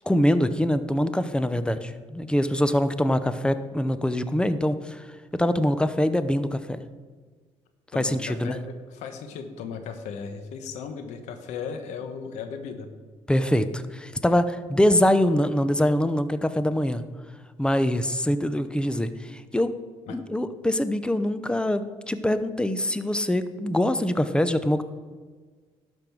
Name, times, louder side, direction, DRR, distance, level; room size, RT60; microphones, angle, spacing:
voice 1, 0.0-5.1 5.3-6.8 7.9-8.6 13.3-17.0 17.6-19.7 20.1-24.8, left 1 dB, 10° left, 12 dB, 0.8 m, -24 dB
voice 2, 7.9-12.9 20.1-20.2, left 6 dB, 80° left, 7 dB, 1.2 m, -36 dB
12.0 x 5.4 x 6.1 m, 1.5 s
supercardioid pair, 75°, 12 cm